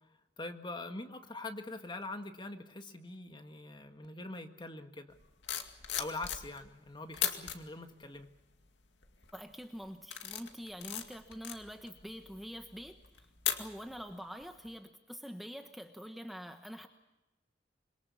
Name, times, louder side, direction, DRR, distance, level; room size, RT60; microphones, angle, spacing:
voice 1, 0.4-5.1 6.0-8.3, left 2 dB, 25° left, 7 dB, 1.7 m, -43 dB
sound 1, 5.2-6.8 7.1-7.6 8.2-8.6 9.0-9.4 9.8-14.1 14.4-14.7, left 10 dB, 85° left, 2.2 m, -38 dB
voice 2, 9.3-13.3 13.6-16.9, equal, ahead, 6 dB, 1.2 m, -45 dB
26.5 x 22.5 x 7.1 m, 0.97 s
head